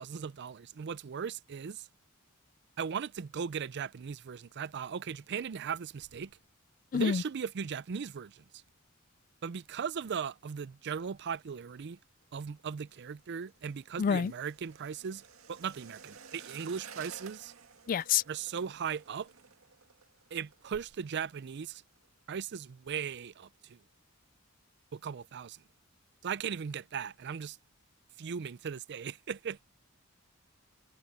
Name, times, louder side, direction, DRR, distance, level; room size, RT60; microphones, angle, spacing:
voice 1, 0.0-1.9 2.8-6.3 6.9-8.4 9.4-12.0 12.3-17.5 18.3-19.3 20.3-21.8 22.3-23.8 24.9-25.6 26.2-27.6 28.2-29.6, right 7 dB, 55° right, 0.4 m, -38 dB
sound 1, 12.6-21.5 21.7-22.1 22.4-22.9 23.3-23.4, right 6 dB, 80° right, 2.0 m, -54 dB
voice 2, 14.0-14.3 17.9-18.2, left 7 dB, 40° left, 0.3 m, -27 dB
head